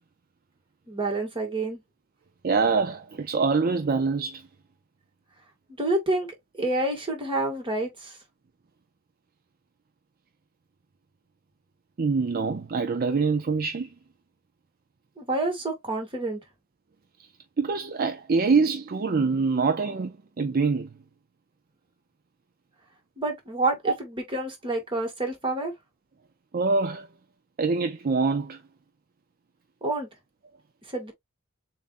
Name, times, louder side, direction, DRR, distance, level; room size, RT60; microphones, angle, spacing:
voice 1, 0.9-1.8 5.8-6.3 6.6-8.2 15.2-16.4 23.2-25.7 29.8-30.1 30.9-31.1, right 2 dB, 25° right, 1.9 m, -28 dB
voice 2, 2.4-4.4 12.0-13.9 17.6-20.9 26.5-27.1 27.6-28.6, right 4 dB, 45° right, 0.5 m, -25 dB
7.1 x 2.6 x 2.5 m
head